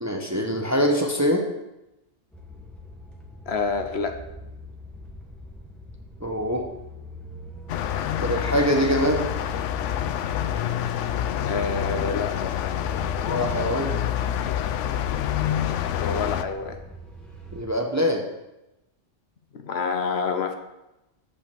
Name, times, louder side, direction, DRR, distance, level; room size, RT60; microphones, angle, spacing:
voice 1, 0.0-1.4 6.2-6.6 8.2-9.3 13.3-14.0 17.5-18.2, equal, 15° right, 3 dB, 0.8 m, -23 dB
sound 1, 2.3-17.6, right 1 dB, ahead, 1.3 m, -42 dB
voice 2, 3.5-4.1 11.4-12.5 16.0-16.8 19.5-20.5, left 5 dB, 65° left, 6 dB, 1.1 m, -27 dB
sound 2, 7.7-16.4, left 10 dB, 85° left, 0.9 m, -27 dB
8.7 x 5.4 x 6.9 m, 0.93 s
omnidirectional pair, 1.2 m